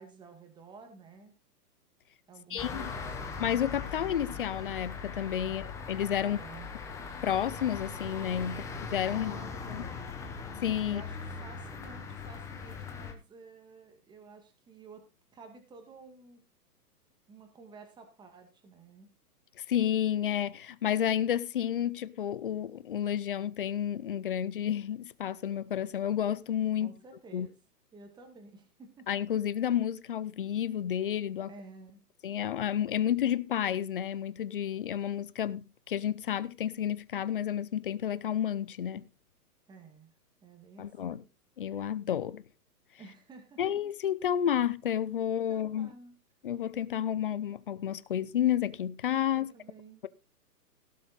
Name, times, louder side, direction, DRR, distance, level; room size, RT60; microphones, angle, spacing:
voice 1, 0.0-1.3 2.3-3.6 5.5-5.7 6.2-6.8 8.4-8.8 9.1-10.2 10.8-15.0 15.3-16.4 17.3-19.1 26.8-27.6 27.9-29.1 31.5-32.0 39.7-40.1 40.4-41.2 43.0-43.6 45.5-46.2 49.4-50.0, right 4 dB, 10° right, 1.9 m, -52 dB
voice 2, 2.5-2.9 3.4-6.4 7.2-8.6 8.9-9.4 9.7-9.8 10.6-11.0 19.7-26.9 27.3-27.5 29.1-31.5 32.2-39.0 40.8-41.2 41.6-42.4 43.6-45.9 46.4-49.5, left 10 dB, 35° left, 0.5 m, -31 dB
sound 1, 2.6-13.1, left 5 dB, 5° left, 0.9 m, -40 dB
17.5 x 7.3 x 4.0 m
hypercardioid pair, 155°, 47 cm